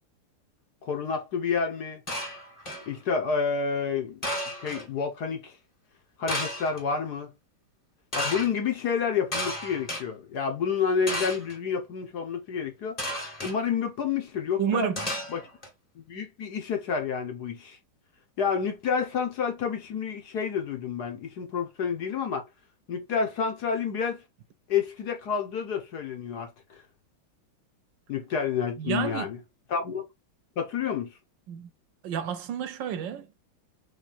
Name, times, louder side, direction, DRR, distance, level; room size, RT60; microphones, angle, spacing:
voice 1, 0.8-2.0 2.9-4.2 4.6-5.6 6.2-7.3 8.1-13.0 13.4-14.9 15.3-15.4 15.9-17.8 18.4-22.4 22.9-24.2 24.7-26.8 28.1-29.4 29.7-30.0 30.6-31.1, left 6 dB, 60° left, 1.4 m, -29 dB
sound 1, 2.1-2.9 4.2-4.9 6.3-6.8 8.1-8.5 9.3-10.0 11.1-11.6 13.0-13.6 15.0-15.7, left 1 dB, 20° left, 1.5 m, -32 dB
voice 2, 14.6-15.0 28.8-29.3 31.5-31.7 32.0-33.4, right 8 dB, 75° right, 1.2 m, -30 dB
3.7 x 3.3 x 4.2 m
omnidirectional pair, 2.2 m